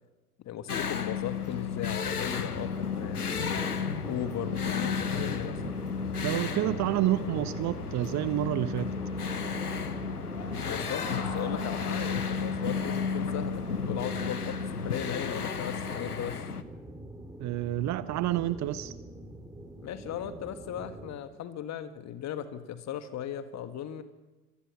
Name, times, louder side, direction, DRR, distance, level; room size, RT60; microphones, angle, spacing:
voice 1, 0.4-3.5 4.0-5.9 10.6-16.4 19.8-24.0, left 10 dB, 35° left, 1.8 m, -37 dB
sound 1, 0.7-16.6, left 6 dB, 85° left, 1.0 m, -33 dB
sound 2, 2.0-21.1, right 1 dB, 10° right, 3.8 m, -42 dB
sound 3, 6.1-13.7, left 4 dB, 60° left, 6.9 m, -46 dB
voice 2, 6.2-8.9 17.4-18.9, right 14 dB, 40° right, 1.1 m, -29 dB
25.5 x 17.5 x 6.2 m
figure-of-eight pair, 70°, 44 cm